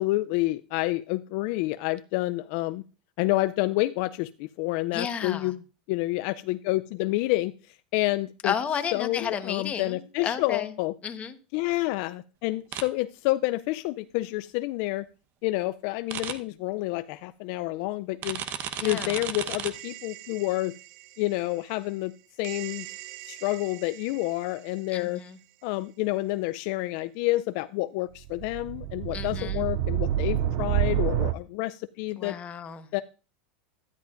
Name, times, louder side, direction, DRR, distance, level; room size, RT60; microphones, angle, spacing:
voice 1, 0.0-2.8 3.2-5.6 5.9-8.5 8.9-11.0 11.5-15.1 15.4-18.4 18.8-20.8 21.2-22.1 22.4-22.9 23.3-25.2 25.6-32.4 32.9-33.0, left 19 dB, 60° left, 13 dB, 0.4 m, -29 dB
voice 2, 4.9-5.5 8.4-10.7 11.0-11.3 18.8-19.2 24.9-25.4 29.1-29.6 32.2-32.9, left 7 dB, 30° left, 9 dB, 1.1 m, -32 dB
sound 1, 12.7-12.8 16.1-16.3 18.2-19.7, right 9 dB, 40° right, 1.0 m, -33 dB
sound 2, 19.7-20.8 22.4-24.3 28.2-31.3, right 12 dB, 55° right, 0.4 m, -30 dB
12.5 x 10.5 x 2.5 m, 0.34 s
supercardioid pair, 120°, 5 cm